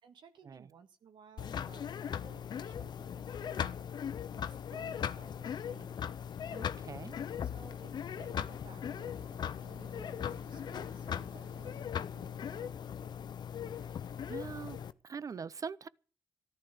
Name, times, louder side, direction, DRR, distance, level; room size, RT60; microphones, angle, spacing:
voice 1, 0.0-4.0 4.3-6.2 7.5-13.3, right 6 dB, 75° right, 1.7 m, -58 dB
sound 1, 1.4-14.9, left 8 dB, 60° left, 0.7 m, -39 dB
sound 2, 5.7-11.8, right 2 dB, 30° right, 3.4 m, -60 dB
voice 2, 6.5-7.2 14.3-14.8 15.0-15.9, right 6 dB, 45° right, 0.7 m, -42 dB
14.0 x 11.5 x 6.7 m
supercardioid pair, 60°, 8 cm